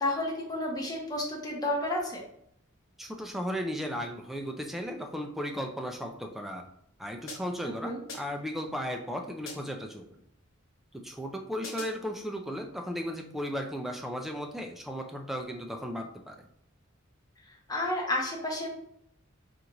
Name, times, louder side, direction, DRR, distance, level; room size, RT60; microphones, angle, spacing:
voice 1, 0.0-2.2 7.6-8.0 17.7-18.7, left 1 dB, 20° left, -2 dB, 0.9 m, -31 dB
voice 2, 3.0-6.6 7.0-10.0 10.9-16.3, equal, ahead, 2 dB, 0.4 m, -35 dB
sound 1, 7.3-7.7 8.1-8.5 9.5-9.9 11.6-12.1, left 2 dB, 70° left, 1.0 m, -44 dB
4.4 x 2.5 x 3.9 m, 0.72 s
head